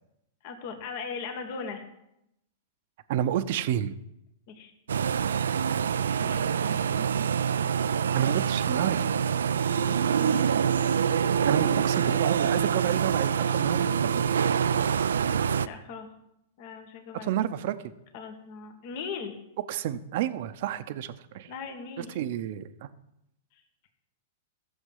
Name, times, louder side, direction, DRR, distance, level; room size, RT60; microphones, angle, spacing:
voice 1, 0.4-1.8 4.5-4.7 6.2-7.3 9.6-9.8 10.2-10.6 15.6-16.1 16.6-17.3 18.1-19.4 21.5-22.1, left 5 dB, 55° left, 5 dB, 1.9 m, -39 dB
voice 2, 3.1-4.0 8.1-9.2 11.5-14.2 17.1-17.8 19.7-21.5 22.0-22.9, right 11 dB, 60° right, 12 dB, 0.8 m, -30 dB
sound 1, 4.9-15.7, right 7 dB, 85° right, 0.4 m, -25 dB
15.0 x 7.2 x 5.6 m, 0.83 s
hypercardioid pair, 120°, 0 cm